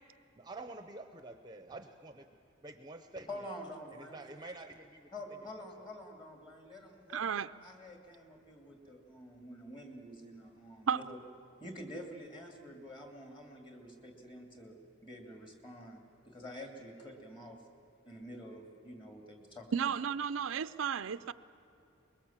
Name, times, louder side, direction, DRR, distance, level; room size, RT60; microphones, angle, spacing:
voice 1, 0.3-2.3 2.6-3.5 3.9-5.1 5.6-5.9, right 2 dB, 20° right, 7 dB, 0.7 m, -48 dB
voice 2, 3.3-4.2 5.1-7.3 7.6-11.2 11.6-14.8 15.0-17.6 18.1-19.7, left 1 dB, 25° left, 3 dB, 2.6 m, -48 dB
voice 3, 7.1-7.5 10.9-11.0 19.7-21.3, right 7 dB, 75° right, 13 dB, 0.5 m, -33 dB
23.5 x 21.5 x 7.4 m, 2.8 s
head